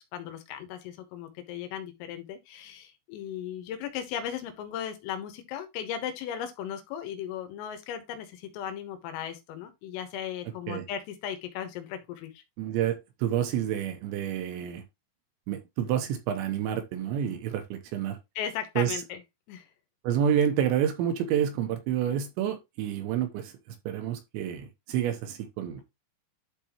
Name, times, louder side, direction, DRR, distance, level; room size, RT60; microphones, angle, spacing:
voice 1, 0.1-12.4 18.4-19.2 19.5-19.7, left 9 dB, 85° left, 3.9 m, -37 dB
voice 2, 12.6-14.8 15.5-18.2 18.8-19.0 20.0-23.5 23.9-25.9, right 9 dB, 75° right, 2.9 m, -29 dB
12.0 x 4.1 x 3.0 m
omnidirectional pair, 5.8 m